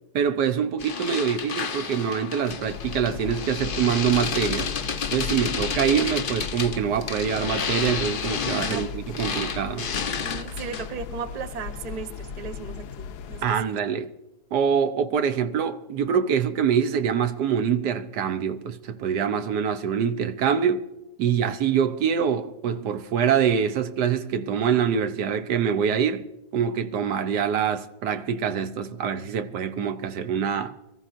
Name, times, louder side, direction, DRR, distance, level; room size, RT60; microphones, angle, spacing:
voice 1, 0.1-4.7 5.1-9.9 13.4-14.1 14.5-20.9 21.2-26.3 26.5-30.7, right 7 dB, 75° right, 1.3 m, -25 dB
sound 1, 0.8-11.0, left 6 dB, 50° left, 0.6 m, -31 dB
sound 2, 2.7-13.5, left 6 dB, 70° left, 1.2 m, -37 dB
voice 2, 8.6-9.4 10.2-13.6, right 5 dB, 30° right, 0.7 m, -36 dB
23.5 x 14.5 x 2.5 m
omnidirectional pair, 1.8 m